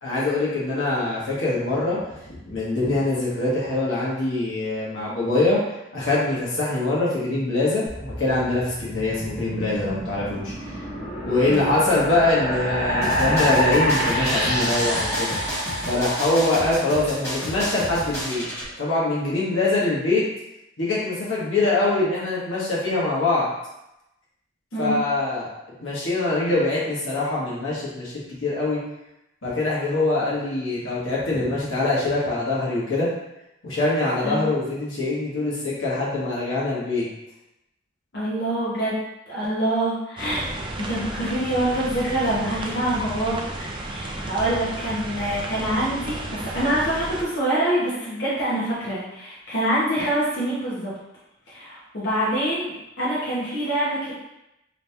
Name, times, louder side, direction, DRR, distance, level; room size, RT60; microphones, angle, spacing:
voice 1, 0.0-2.0 2.3-10.7 11.2-15.3 15.8-18.4 18.8-20.2 20.8-23.5 24.8-25.5 25.8-28.8 29.4-33.1 33.6-37.0, left 2 dB, 85° left, -7 dB, 1.2 m, -23 dB
sound 1, 7.9-17.2, equal, 10° right, 1.4 m, -27 dB
sound 2, 13.0-18.7, equal, 15° left, 1.2 m, -32 dB
voice 2, 38.1-39.0 39.3-40.5 40.8-43.4 43.8-50.9 51.5-54.1, right 1 dB, 60° left, -8 dB, 1.0 m, -25 dB
sound 3, 40.2-47.2, right 2 dB, 25° right, 0.3 m, -33 dB
3.2 x 2.8 x 3.3 m, 0.90 s
head